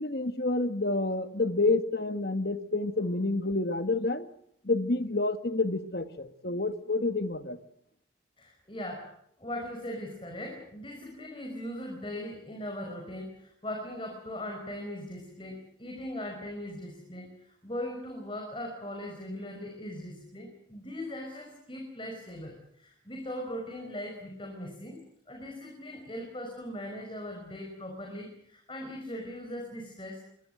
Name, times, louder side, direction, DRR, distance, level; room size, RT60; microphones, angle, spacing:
voice 1, 0.0-4.3 4.6-7.6, left 2 dB, 55° left, 11 dB, 1.5 m, -29 dB
voice 2, 8.4-9.1 9.4-25.0 25.3-30.2, left 1 dB, 25° left, 2 dB, 5.2 m, -39 dB
25.0 x 21.0 x 7.8 m, 0.69 s
head